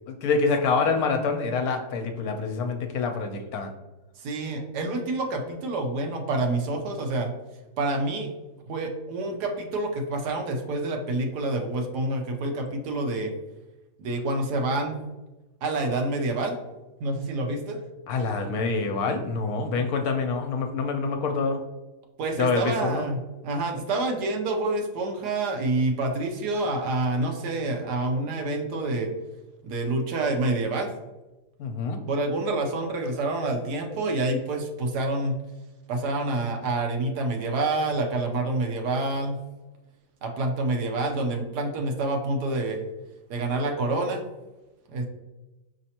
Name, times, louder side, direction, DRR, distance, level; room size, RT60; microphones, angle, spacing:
voice 1, 0.1-3.7 18.1-21.6 22.4-23.0 31.6-32.0, left 4 dB, 70° left, 4 dB, 1.0 m, -26 dB
voice 2, 4.2-7.3 7.8-8.3 8.7-13.3 14.0-15.0 15.6-16.5 17.0-17.8 22.2-23.2 23.4-29.1 29.6-30.9 32.1-35.3 35.9-39.4 40.2-42.8 43.3-44.2 44.9-45.1, right 2 dB, 80° right, 3 dB, 1.3 m, -27 dB
5.2 x 3.3 x 2.8 m, 1.1 s
omnidirectional pair, 1.8 m